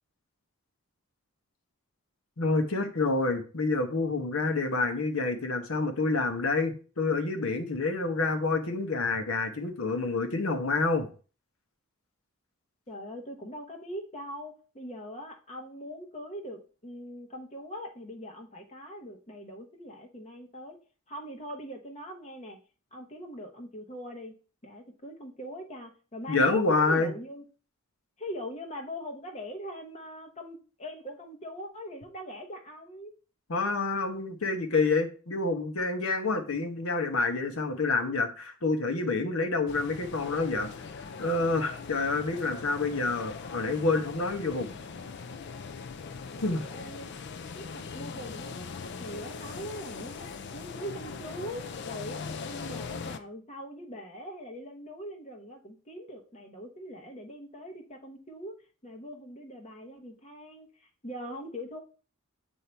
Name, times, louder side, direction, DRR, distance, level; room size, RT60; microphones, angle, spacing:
voice 1, 2.4-11.1 26.3-27.1 33.5-40.7 41.2-44.7 46.4-46.6, left 3 dB, 75° left, 6 dB, 1.0 m, -28 dB
voice 2, 12.9-20.8 21.1-22.6 22.9-24.3 24.6-27.4 28.2-33.1 46.4-47.1 47.5-48.7 49.0-58.5 58.8-61.8, equal, 30° left, 3 dB, 1.0 m, -42 dB
sound 1, 39.7-53.2, left 5 dB, 55° left, 0.5 m, -40 dB
8.3 x 2.8 x 4.4 m, 0.38 s
head